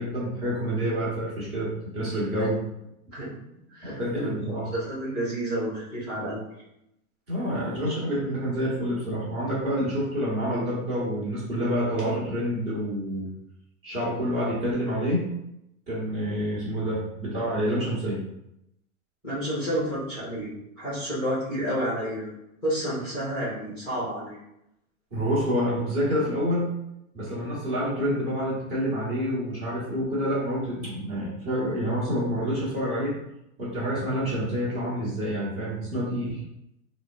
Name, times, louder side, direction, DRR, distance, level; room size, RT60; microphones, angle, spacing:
voice 1, 0.0-2.6 3.8-4.6 7.3-13.3 13.8-15.3 15.9-18.2 25.1-26.7 27.1-33.1 33.6-36.4, equal, 35° right, -7 dB, 1.4 m, -28 dB
voice 2, 3.7-4.3 4.7-6.4 19.2-20.5 20.8-22.3 22.6-24.4, equal, 5° right, -12 dB, 0.4 m, -30 dB
3.7 x 2.2 x 2.5 m, 0.83 s
supercardioid pair, 165°, 44 cm